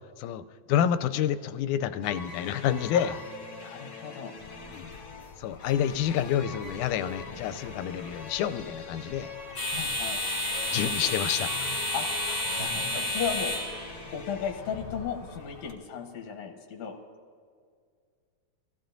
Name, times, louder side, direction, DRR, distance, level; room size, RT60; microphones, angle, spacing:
voice 1, 0.7-3.2 4.7-4.9 5.4-9.3 10.7-11.7, left 10 dB, 85° left, 11 dB, 2.0 m, -28 dB
sound 1, 2.0-14.6, left 4 dB, 50° left, 2.5 m, -44 dB
voice 2, 3.5-4.3 9.7-10.2 11.9-12.1 12.5-13.5 14.1-17.0, left 7 dB, 70° left, 1 dB, 2.1 m, -35 dB
sound 2, 4.4-15.7, left 1 dB, 35° left, 2.7 m, -34 dB
sound 3, 8.3-12.7, right 5 dB, 70° right, 2.3 m, -47 dB
23.5 x 15.0 x 2.6 m, 2.2 s
omnidirectional pair, 3.5 m